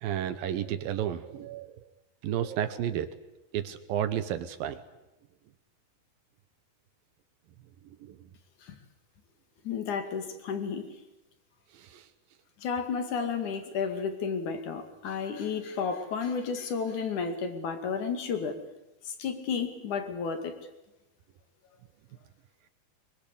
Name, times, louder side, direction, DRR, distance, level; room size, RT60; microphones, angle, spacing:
voice 1, 0.0-1.7 2.2-3.2 3.5-4.8 11.8-12.0, right 10 dB, 70° right, 11 dB, 2.5 m, -32 dB
voice 2, 9.6-10.9 12.6-18.5 19.0-20.5, left 6 dB, 55° left, 8 dB, 3.4 m, -32 dB
24.0 x 23.5 x 8.4 m, 0.97 s
omnidirectional pair, 4.7 m